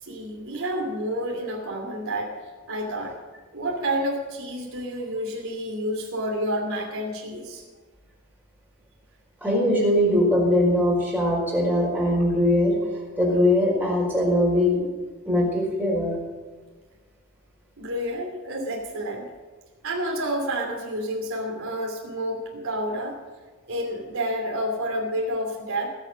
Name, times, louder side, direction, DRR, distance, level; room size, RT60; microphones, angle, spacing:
voice 1, 0.0-3.2 3.5-7.6 17.8-19.3 19.8-23.2 23.7-25.9, equal, 70° right, -1 dB, 2.9 m, -29 dB
voice 2, 9.4-12.8 13.2-14.9 15.2-16.2, left 1 dB, 10° right, -4 dB, 4.7 m, -21 dB
19.5 x 7.3 x 6.5 m, 1.3 s
head